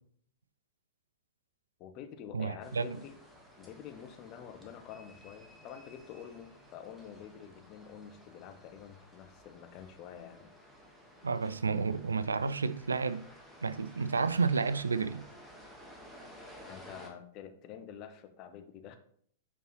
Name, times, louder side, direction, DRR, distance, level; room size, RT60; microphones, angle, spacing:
voice 1, 1.8-3.2 3.6-10.5 16.6-19.0, left 8 dB, 35° left, 0.7 m, -48 dB
voice 2, 2.3-3.0 11.2-13.2 13.6-15.2, right 4 dB, 75° right, 0.3 m, -31 dB
sound 1, 2.6-17.1, equal, 5° right, 1.3 m, -55 dB
7.9 x 4.5 x 2.9 m
figure-of-eight pair, 100°, 0 cm